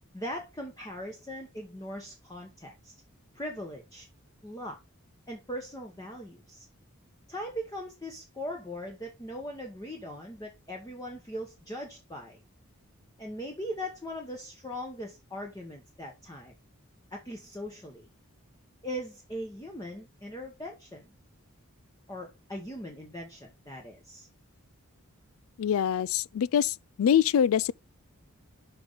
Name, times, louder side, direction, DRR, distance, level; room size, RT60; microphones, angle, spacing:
voice 1, 0.1-2.9 3.3-4.1 4.4-4.8 5.3-6.7 7.3-12.4 13.2-16.5 17.1-18.1 18.8-21.1 22.1-24.3, equal, 15° left, 1.1 m, -40 dB
voice 2, 25.6-27.7, left 8 dB, 75° left, 0.3 m, -24 dB
5.9 x 5.4 x 5.0 m
head